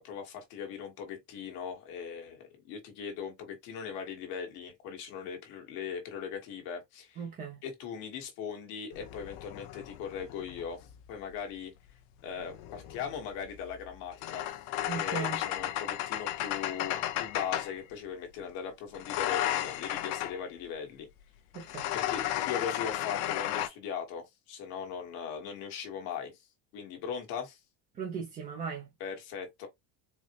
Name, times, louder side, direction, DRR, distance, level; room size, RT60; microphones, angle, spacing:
voice 1, 0.0-7.2 7.6-11.7 12.2-14.6 14.9-21.1 21.9-26.4 26.7-27.6 29.0-29.7, left 7 dB, 55° left, 1.3 m, -39 dB
voice 2, 7.2-7.6 14.9-15.4 21.5-21.9 28.0-28.9, right 6 dB, 20° right, 0.5 m, -37 dB
sound 1, 8.9-11.1 12.3-17.8 18.9-20.4 21.5-23.7, left 13 dB, 70° left, 0.7 m, -34 dB
4.2 x 2.0 x 2.8 m
cardioid pair, 170°, 44 cm